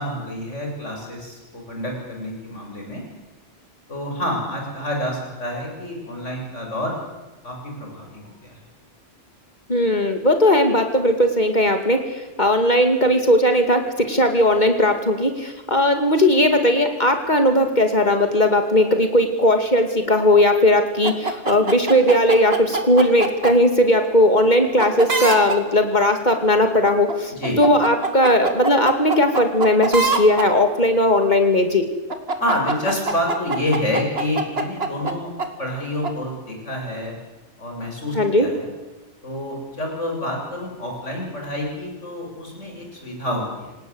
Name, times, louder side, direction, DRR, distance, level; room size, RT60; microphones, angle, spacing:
voice 1, 0.0-3.0 3.9-7.0 7.4-8.6 27.3-27.6 32.4-35.3 35.6-37.2 37.6-38.7 39.2-43.7, left 1 dB, 85° left, 1 dB, 7.4 m, -28 dB
voice 2, 9.7-31.8 38.1-38.5, left 1 dB, 40° left, 5 dB, 2.7 m, -18 dB
sound 1, 21.0-23.5 24.8-25.6 26.9-27.1 27.4-30.5 32.1-35.1 35.4-35.5 36.0-36.1, right 3 dB, 55° right, 2.5 m, -23 dB
27.5 x 18.5 x 8.2 m, 1.2 s
omnidirectional pair, 1.2 m